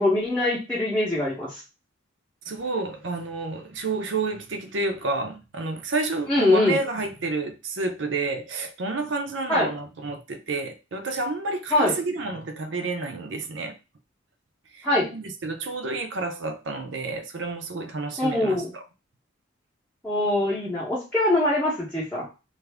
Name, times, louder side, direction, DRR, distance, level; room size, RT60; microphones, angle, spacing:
voice 1, 0.0-1.6 6.3-6.8 9.5-9.7 11.7-12.0 14.8-15.1 18.2-18.7 20.0-22.3, left 2 dB, 5° left, 0.8 m, -23 dB
voice 2, 2.5-13.7 14.7-18.8, right 3 dB, 65° right, 0.6 m, -30 dB
2.5 x 2.5 x 3.3 m
head